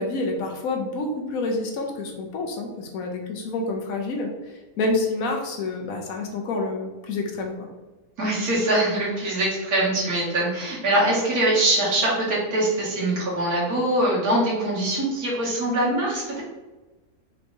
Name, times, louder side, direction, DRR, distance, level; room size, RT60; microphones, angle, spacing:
voice 1, 0.0-4.3 4.8-7.7, left 2 dB, 70° left, 2 dB, 1.1 m, -28 dB
voice 2, 8.2-16.4, right 1 dB, 75° right, -6 dB, 1.9 m, -23 dB
4.6 x 3.2 x 2.6 m, 1.2 s
omnidirectional pair, 1.6 m